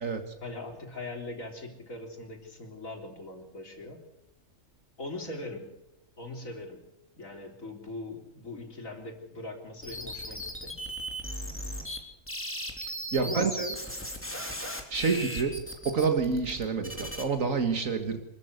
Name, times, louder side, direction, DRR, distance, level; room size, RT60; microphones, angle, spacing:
voice 1, 0.4-4.0 5.0-5.7 6.2-6.8 7.2-10.8 13.2-13.6 15.1-15.3, left 2 dB, 75° left, 3 dB, 4.2 m, -40 dB
sound 1, 9.8-12.0 12.3-17.2, equal, 10° left, 3.4 m, -37 dB
voice 2, 13.1-13.7 14.9-15.5 15.9-18.2, right 5 dB, 75° right, 6 dB, 2.1 m, -28 dB
25.5 x 14.0 x 7.9 m, 0.92 s
omnidirectional pair, 1.4 m